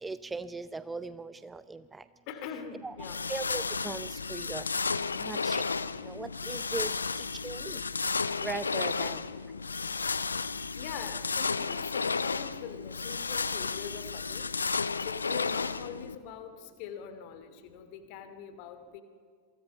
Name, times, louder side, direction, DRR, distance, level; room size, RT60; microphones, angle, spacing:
voice 1, 0.0-2.0 2.8-2.9 3.3-4.7 5.2-5.7 6.0-6.9 7.2-7.8 8.4-9.3, right 3 dB, 10° right, 15 dB, 0.6 m, -39 dB
voice 2, 2.3-3.2 6.8-7.0 8.9-9.2 10.7-19.0, left 8 dB, 45° left, 10 dB, 2.6 m, -43 dB
sound 1, 3.0-16.2, left 4 dB, 75° left, 0.7 m, -33 dB
28.0 x 23.5 x 5.5 m, 2.1 s
figure-of-eight pair, 90°, 0 cm